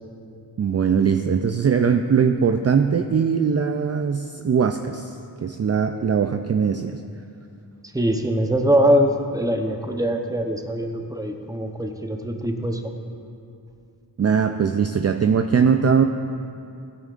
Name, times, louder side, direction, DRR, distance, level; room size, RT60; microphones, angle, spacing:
voice 1, 0.6-7.0 14.2-16.0, right 6 dB, 40° right, 7 dB, 0.4 m, -21 dB
voice 2, 7.9-12.8, equal, 10° right, 4 dB, 0.8 m, -22 dB
14.5 x 9.0 x 2.5 m, 2.6 s
wide cardioid pair, 50°, 40 cm